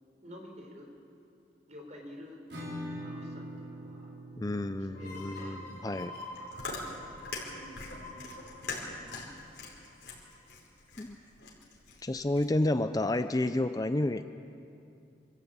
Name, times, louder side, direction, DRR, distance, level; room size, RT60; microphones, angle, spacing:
voice 1, 0.2-0.9 1.7-2.4 3.0-4.1 5.0-5.6 7.3-8.7, left 1 dB, 40° right, 2 dB, 4.0 m, -50 dB
Acoustic guitar / Strum, 2.5-7.9, equal, 80° right, 4.6 m, -45 dB
voice 2, 4.4-6.1 11.0-11.2 12.0-14.2, left 1 dB, 20° left, 10 dB, 0.5 m, -30 dB
sound 1, 4.9-10.4, left 1 dB, 55° left, 5.2 m, -47 dB
Chewing mastication, 6.2-12.7, left 3 dB, 85° left, 4.9 m, -43 dB
25.5 x 14.0 x 8.7 m, 2.5 s
head